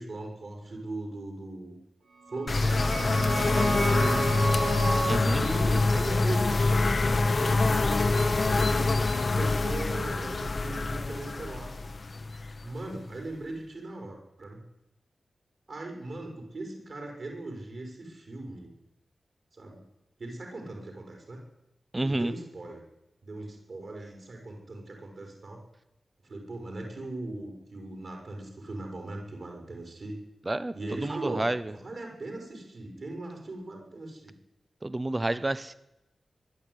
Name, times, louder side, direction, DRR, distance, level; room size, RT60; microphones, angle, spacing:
voice 1, 0.0-1.8 2.3-4.3 5.4-11.7 12.6-14.6 15.7-18.7 19.5-19.8 20.2-21.4 22.0-22.8 23.2-25.6 26.2-30.2 30.7-34.3, right 2 dB, 50° right, 2 dB, 5.8 m, -39 dB
sound 1, 2.2-7.6, right 3 dB, 70° right, 4.3 m, -34 dB
sound 2, 2.5-13.1, left 3 dB, 40° left, 1.1 m, -25 dB
voice 2, 5.1-5.4 21.9-22.3 30.5-30.7 31.0-31.6 34.8-35.7, right 2 dB, 20° right, 14 dB, 0.8 m, -29 dB
23.0 x 12.0 x 9.8 m, 0.89 s
wide cardioid pair, 155°, 0 cm